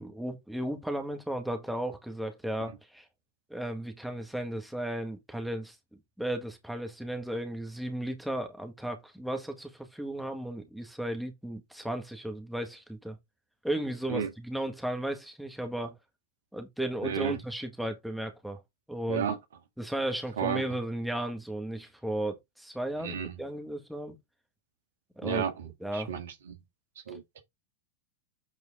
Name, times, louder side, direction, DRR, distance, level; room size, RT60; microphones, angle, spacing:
voice 1, 0.0-3.1 3.5-5.8 6.2-13.2 13.6-15.9 16.5-18.6 18.9-19.3 19.8-24.2 25.2-25.4 25.8-26.1, right 1 dB, ahead, 1.8 m, -35 dB
voice 2, 17.0-17.4 19.1-19.4 20.4-20.6 23.0-23.3 25.2-26.6 27.1-27.4, right 7 dB, 60° right, 1.8 m, -32 dB
8.5 x 4.4 x 3.7 m
figure-of-eight pair, 90°, 0 cm